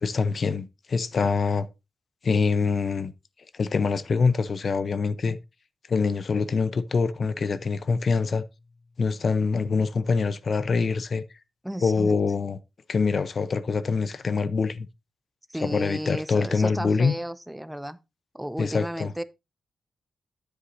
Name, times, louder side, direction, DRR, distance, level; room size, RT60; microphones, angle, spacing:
voice 1, 0.0-1.7 2.2-3.1 3.5-5.4 5.9-8.4 9.0-11.2 11.8-12.6 12.9-14.9 15.6-17.1 18.6-19.1, left 4 dB, 50° left, 0.6 m, -24 dB
Keyboard (musical), 7.0-10.2, left 3 dB, 35° left, 2.0 m, -53 dB
voice 2, 11.6-12.1 15.5-18.0 18.3-19.2, equal, 5° right, 0.5 m, -33 dB
9.8 x 8.1 x 2.6 m
wide cardioid pair, 115°, 0 cm